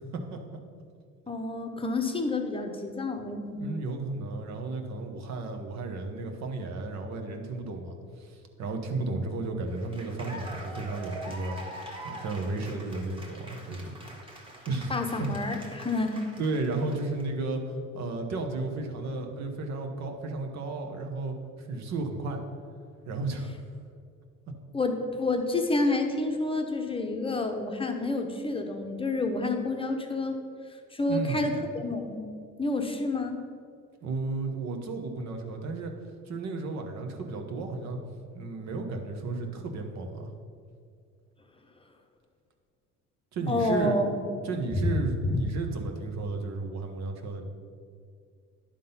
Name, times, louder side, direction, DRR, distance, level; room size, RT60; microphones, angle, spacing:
voice 1, 1.3-3.7 14.9-16.3 24.7-30.4 30.9-32.3 32.6-33.4 43.5-44.2 44.9-45.0 45.3-45.4, left 2 dB, 20° left, 4 dB, 0.8 m, -29 dB
voice 2, 3.6-13.9 14.7-14.9 15.2-15.3 16.4-22.4 23.1-23.6 31.1-31.4 34.0-35.9 36.3-38.0 38.3-40.3 43.3-44.0 44.4-47.4, right 3 dB, 60° right, 4 dB, 1.1 m, -33 dB
Cheering / Applause, 9.7-17.2, right 1 dB, 15° right, 1.5 m, -44 dB
10.0 x 3.8 x 5.5 m, 2.2 s
cardioid pair, 100°, 30 cm